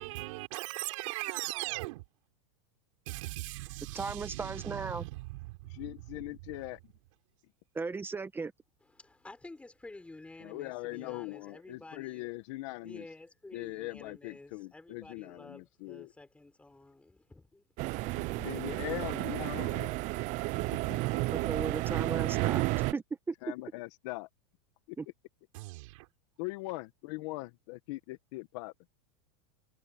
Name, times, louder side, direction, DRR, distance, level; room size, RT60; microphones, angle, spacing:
voice 1, 0.0-2.0 3.1-5.8 6.2-6.3 25.5-26.1, right 22 dB, 65° right, 5.6 m, -39 dB
voice 2, 3.9-5.0 7.7-8.5 21.3-22.6 22.9-23.3 25.0-25.1, right 4 dB, 10° right, 1.4 m, -36 dB
voice 3, 5.7-6.8 10.4-13.0 13.5-16.1 18.2-19.9 20.7-21.2 23.4-24.3 24.9-25.0 26.4-28.7, left 21 dB, 60° left, 1.4 m, -41 dB
voice 4, 8.8-12.3 12.8-17.6, left 2 dB, 5° left, 5.6 m, -51 dB
sound 1, 17.8-22.9, right 21 dB, 45° right, 0.7 m, -32 dB
supercardioid pair, 135°, 18 cm